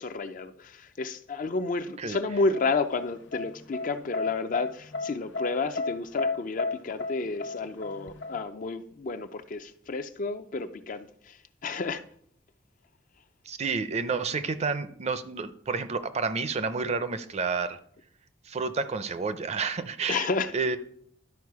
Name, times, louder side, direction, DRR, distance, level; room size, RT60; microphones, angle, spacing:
voice 1, 0.0-11.4 11.6-12.0 20.1-20.5, left 3 dB, 45° left, 0.5 m, -31 dB
sound 1, 2.5-8.4, left 3 dB, 90° left, 0.9 m, -32 dB
voice 2, 13.5-17.8 18.4-20.3 20.5-20.8, right 4 dB, 35° right, 0.5 m, -30 dB
11.5 x 4.7 x 4.7 m
head